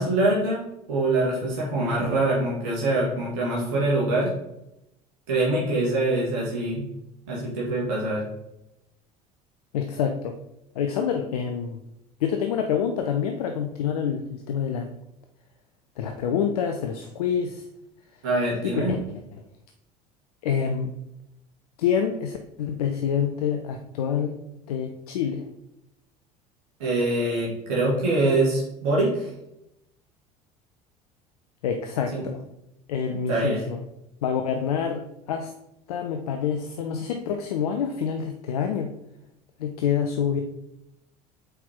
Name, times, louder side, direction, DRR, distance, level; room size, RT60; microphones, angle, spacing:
voice 1, 0.0-4.3 5.3-6.8 7.3-8.2 18.2-19.0 26.8-29.3 32.1-32.3 33.3-33.6, right 2 dB, 60° right, -4 dB, 2.3 m, -24 dB
voice 2, 9.7-10.4 10.8-11.8 12.2-14.9 16.0-17.6 18.6-19.0 20.4-20.9 21.8-24.3 24.7-25.4 31.6-32.4 32.9-33.8 34.2-35.0 35.3-35.5 35.9-38.9 39.6-40.4, left 7 dB, 65° left, 5 dB, 0.6 m, -27 dB
8.0 x 4.6 x 3.7 m, 0.85 s
figure-of-eight pair, 65°, 21 cm